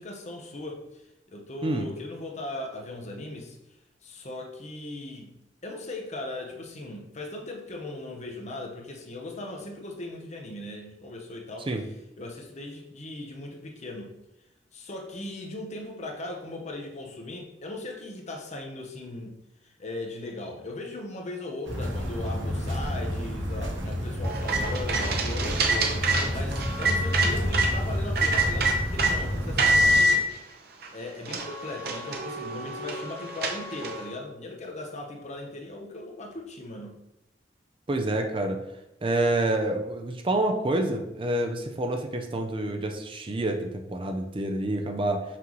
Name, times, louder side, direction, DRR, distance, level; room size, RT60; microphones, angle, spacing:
voice 1, 0.0-3.6 4.0-5.3 5.6-11.7 12.2-14.1 14.7-19.3 19.6-26.0 26.3-30.3 30.9-37.0, left 2 dB, 40° left, 1 dB, 1.0 m, -38 dB
sound 1, 21.6-30.0, equal, 90° right, 1.2 m, -30 dB
sound 2, 24.2-27.7 28.2-29.1 29.6-30.2 30.8-30.9 31.3-34.1, right 2 dB, 60° right, 0.9 m, -25 dB
voice 2, 37.9-38.6 39.0-45.2, right 1 dB, 30° right, 4 dB, 0.6 m, -27 dB
5.9 x 5.4 x 3.1 m, 0.89 s
head